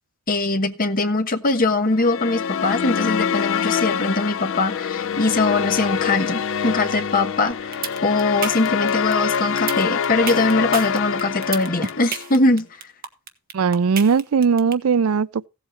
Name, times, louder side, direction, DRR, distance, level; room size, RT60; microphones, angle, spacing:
voice 1, 0.3-7.8 8.0-12.7, left 2 dB, 40° left, 1.3 m, -21 dB
sound 1, 1.9-12.3, left 7 dB, 60° left, 0.5 m, -25 dB
sound 2, 7.5-14.7, right 7 dB, 45° right, 1.3 m, -30 dB
voice 2, 13.5-15.5, right 6 dB, 75° right, 0.4 m, -19 dB
16.0 x 8.2 x 3.2 m
head